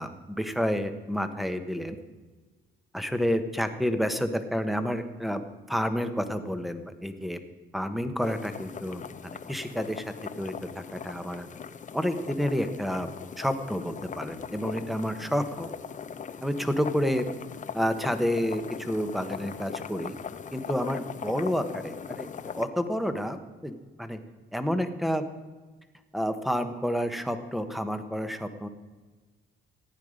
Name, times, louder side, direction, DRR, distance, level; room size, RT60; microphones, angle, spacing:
voice 1, 0.0-2.0 2.9-5.4 5.7-7.4 7.7-11.5 11.9-13.1 13.4-15.7 16.4-17.2 17.7-20.2 20.5-23.4 23.6-24.2 24.5-25.2 26.1-28.7, equal, ahead, 9 dB, 1.1 m, -29 dB
sound 1, 8.2-22.6, left 7 dB, 40° left, 0.7 m, -40 dB
15.0 x 9.4 x 5.1 m, 1.3 s
cardioid pair, 90°, 20 cm